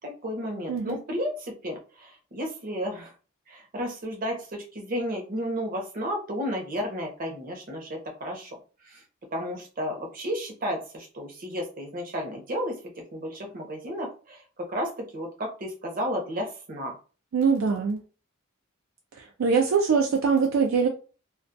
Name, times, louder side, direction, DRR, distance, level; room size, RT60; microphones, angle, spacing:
voice 1, 0.0-3.1 3.5-8.6 8.8-9.0 9.3-12.8 13.1-17.0, equal, 45° right, 0.7 m, -33 dB
voice 2, 17.3-18.0 19.4-20.9, right 5 dB, 70° right, 0.3 m, -22 dB
2.3 x 2.1 x 2.5 m
head